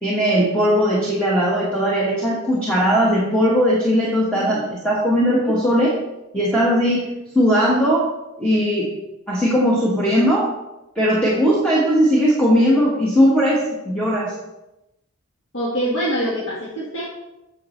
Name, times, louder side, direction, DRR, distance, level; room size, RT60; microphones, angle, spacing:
voice 1, 0.0-5.9 6.3-7.1 7.3-8.0 8.4-8.9 9.3-10.4 10.9-13.6 13.8-14.3, equal, 5° left, -7 dB, 1.3 m, -18 dB
voice 2, 4.4-4.7 5.5-5.6 15.5-17.1, equal, 70° left, -6 dB, 1.5 m, -25 dB
8.3 x 6.7 x 3.1 m, 0.94 s
head